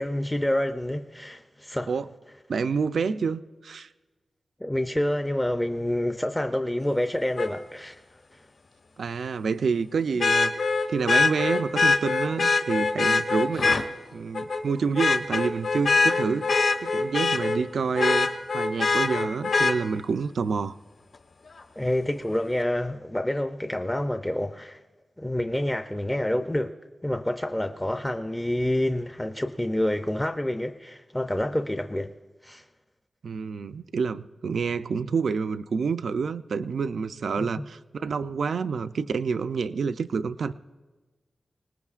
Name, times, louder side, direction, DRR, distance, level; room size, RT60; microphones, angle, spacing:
voice 1, 0.0-1.9 4.6-7.9 21.8-24.8 25.2-26.7 27.0-32.1 32.4-32.6 37.4-37.7, left 1 dB, 10° left, 0.4 m, -28 dB
voice 2, 2.5-3.9 9.0-10.5 10.9-13.8 14.1-16.5 16.8-18.3 18.5-20.8 33.2-40.5, right 5 dB, 75° right, 0.4 m, -28 dB
Vehicle horn car horn honking, 7.4-7.5 10.2-13.8 14.3-14.6 15.0-17.6 18.0-19.7 21.6-21.7, left 4 dB, 65° left, 1.1 m, -23 dB
25.5 x 19.5 x 2.4 m
wide cardioid pair, 150°, 0 cm